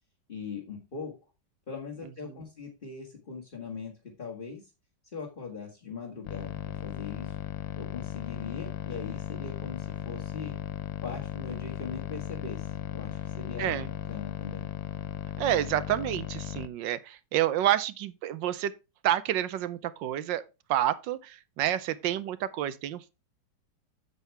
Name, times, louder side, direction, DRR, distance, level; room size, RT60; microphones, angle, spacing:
voice 1, 0.3-1.1 1.7-4.7 5.1-7.4 7.8-10.6 11.0-14.7, left 5 dB, 30° left, 1.7 m, -41 dB
sound 1, 6.3-16.7, left 11 dB, 85° left, 1.4 m, -36 dB
voice 2, 15.4-18.7 19.0-20.4 20.7-23.1, right 12 dB, 80° right, 1.3 m, -29 dB
8.2 x 7.6 x 3.3 m
omnidirectional pair, 2.1 m